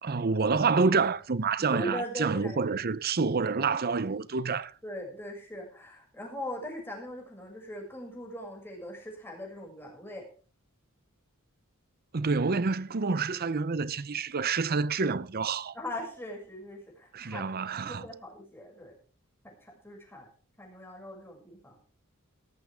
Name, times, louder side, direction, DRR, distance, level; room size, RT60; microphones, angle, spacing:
voice 1, 0.0-4.7 12.1-15.7 17.1-18.1, right 4 dB, 45° right, 0.7 m, -28 dB
voice 2, 1.6-2.9 4.8-10.3 15.7-17.4 17.8-19.0 19.4-20.3 20.6-21.8, equal, 10° left, 6.5 m, -40 dB
18.0 x 14.0 x 3.5 m
head